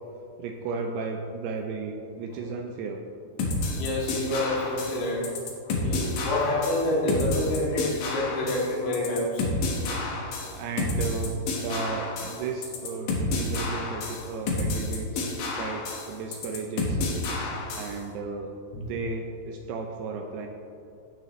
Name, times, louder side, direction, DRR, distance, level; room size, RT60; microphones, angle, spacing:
voice 1, 0.4-3.0 10.5-15.1 15.6-17.0 17.7-20.5, right 4 dB, 80° right, 3 dB, 2.4 m, -34 dB
sound 1, 3.4-18.0, left 2 dB, 60° left, 2.4 m, -30 dB
voice 2, 3.6-9.5 9.8-9.9 10.4-10.5 18.7-18.8, left 1 dB, 90° left, -4 dB, 4.5 m, -28 dB
13.5 x 9.3 x 3.2 m, 2.6 s
omnidirectional pair, 5.3 m